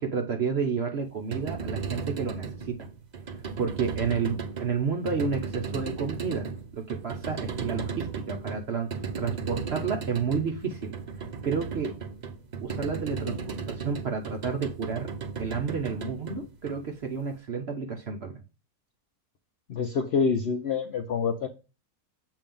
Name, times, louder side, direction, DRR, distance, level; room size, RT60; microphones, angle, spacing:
voice 1, 0.0-2.8 3.3-6.5 6.7-8.9 9.2-10.9 11.4-11.9 12.6-15.1 15.4-18.4, right 5 dB, 55° right, 0.8 m, -31 dB
sound 1, 1.1-17.3, right 5 dB, 85° right, 0.4 m, -36 dB
voice 2, 19.7-21.5, left 5 dB, 60° left, 0.6 m, -26 dB
7.2 x 2.8 x 5.2 m
omnidirectional pair, 1.7 m